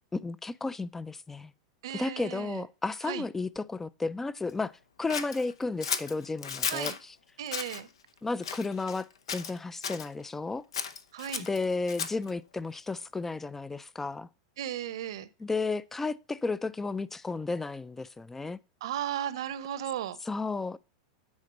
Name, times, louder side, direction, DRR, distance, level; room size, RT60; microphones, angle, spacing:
voice 1, 0.1-1.5 1.9-4.7 5.0-7.1 8.2-10.6 11.4-14.3 15.4-18.6 20.2-20.8, left 3 dB, 10° left, 0.4 m, -33 dB
voice 2, 1.8-2.6 3.0-3.2 6.6-7.0 7.4-7.9 11.1-11.5 14.6-15.3 18.8-20.2, right 11 dB, 70° right, 0.9 m, -35 dB
Scissors, 5.1-7.0 7.5-7.8 8.4-9.0 9.3-10.1 10.7-12.3, left 7 dB, 80° left, 0.8 m, -35 dB
9.7 x 4.3 x 5.2 m
hypercardioid pair, 100°, 3 cm